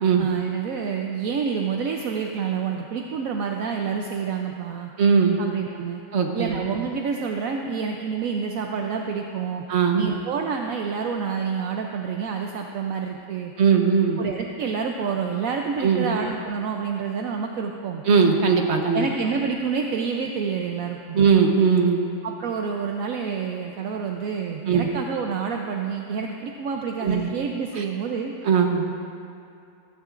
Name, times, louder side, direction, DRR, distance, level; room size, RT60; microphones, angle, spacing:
voice 1, 0.2-4.9 5.4-6.0 6.3-9.6 10.0-13.5 14.2-18.0 18.9-21.2 22.2-28.3, right 6 dB, 70° right, 2 dB, 1.0 m, -28 dB
voice 2, 5.0-5.4 6.1-6.6 9.7-10.1 13.6-14.2 15.8-16.1 18.1-19.1 21.1-22.1 24.7-24.9 27.0-27.3 27.7-27.8 28.4-28.9, right 6 dB, 50° right, 2 dB, 1.3 m, -19 dB
16.0 x 14.0 x 2.5 m, 2.5 s
omnidirectional pair, 1.6 m